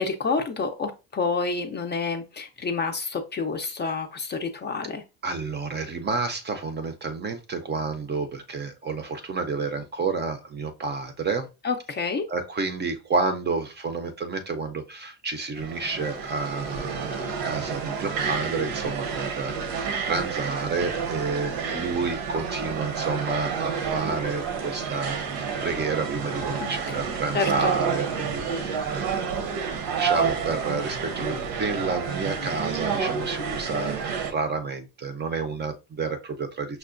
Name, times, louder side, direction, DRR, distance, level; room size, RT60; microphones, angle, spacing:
voice 1, 0.0-5.0 11.6-12.3 26.6-27.0 27.3-27.7, left 4 dB, 30° left, 5 dB, 0.4 m, -28 dB
voice 2, 5.2-11.5 12.3-29.7 30.0-36.8, right 4 dB, 25° right, 7 dB, 0.5 m, -30 dB
sound 1, 15.6-34.3, right 6 dB, 80° right, 0.9 m, -29 dB
5.7 x 2.1 x 2.5 m, 0.28 s
cardioid pair, 115°, 39 cm